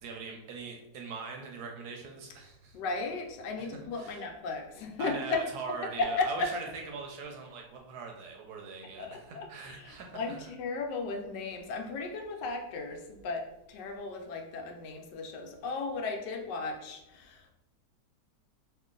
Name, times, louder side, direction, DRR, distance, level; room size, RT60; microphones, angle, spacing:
voice 1, 0.0-2.8 3.6-3.7 3.9-4.3 5.0-10.4, right 4 dB, 70° right, 2 dB, 1.0 m, -41 dB
voice 2, 2.7-5.5 6.0-6.5 9.0-17.5, left 3 dB, 80° left, 3 dB, 1.2 m, -35 dB
3.0 x 2.5 x 3.7 m, 0.91 s
omnidirectional pair, 1.9 m